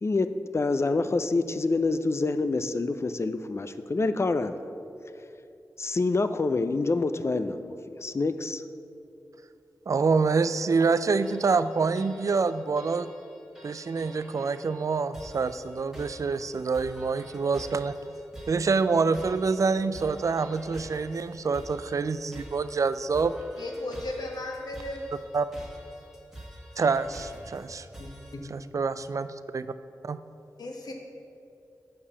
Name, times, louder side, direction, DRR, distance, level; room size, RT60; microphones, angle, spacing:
voice 1, 0.0-4.6 5.8-8.6, left 3 dB, 40° left, 10 dB, 0.4 m, -27 dB
voice 2, 9.9-13.1 13.6-18.0 18.5-23.3 25.3-25.5 26.8-27.9 28.5-29.7 30.0-30.2, right 4 dB, 55° right, 13 dB, 0.3 m, -26 dB
sound 1, 11.2-28.3, equal, 5° right, 1.5 m, -47 dB
voice 3, 23.6-25.0 28.0-28.4 30.6-30.9, left 1 dB, 80° left, 1 dB, 1.2 m, -36 dB
6.6 x 5.4 x 6.9 m, 2.6 s
wide cardioid pair, 65°, 7 cm